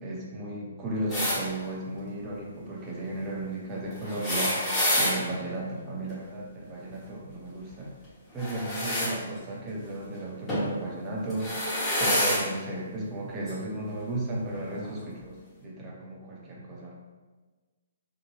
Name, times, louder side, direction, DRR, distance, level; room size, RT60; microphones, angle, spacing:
voice 1, 0.0-7.9 8.3-11.6 12.0-17.0, right 1 dB, 20° right, -3 dB, 0.6 m, -35 dB
sound 1, 1.1-1.4 4.0-5.2 8.4-9.1 10.5-10.7 11.3-12.4 13.5-13.6 14.8-14.9, left 1 dB, 15° left, 1.1 m, -27 dB
2.7 x 2.1 x 3.0 m, 1.3 s
figure-of-eight pair, 125°, 0 cm